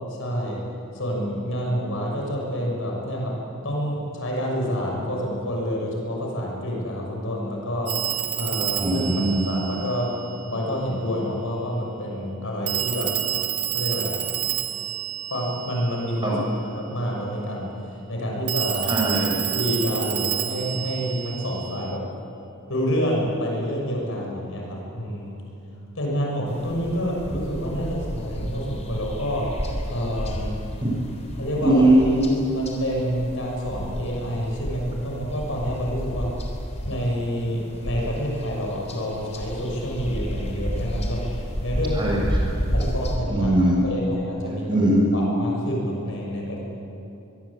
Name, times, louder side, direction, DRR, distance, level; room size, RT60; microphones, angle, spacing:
voice 1, 0.1-0.6 0.9-10.1 10.4-13.1 13.7-14.2 15.3-18.9 19.5-22.0 22.7-25.4 25.9-29.5 29.8-30.6 31.3-31.9 32.5-36.3 36.8-41.2 41.6-42.2 42.7-44.8 45.1-46.6, equal, 60° left, -1 dB, 6.6 m, -28 dB
Telephone, 7.9-10.5 12.7-16.3 18.5-22.0, right 13 dB, 85° right, 2.1 m, -29 dB
voice 2, 8.8-9.5 16.2-16.3 18.9-19.4 30.8-30.9 31.6-32.4 41.9-42.2 43.3-43.8 44.7-45.2, right 1 dB, 20° right, -3 dB, 7.1 m, -20 dB
sound 1, 26.5-43.2, equal, 30° left, 3.7 m, -31 dB
24.0 x 22.5 x 8.7 m, 2.9 s
head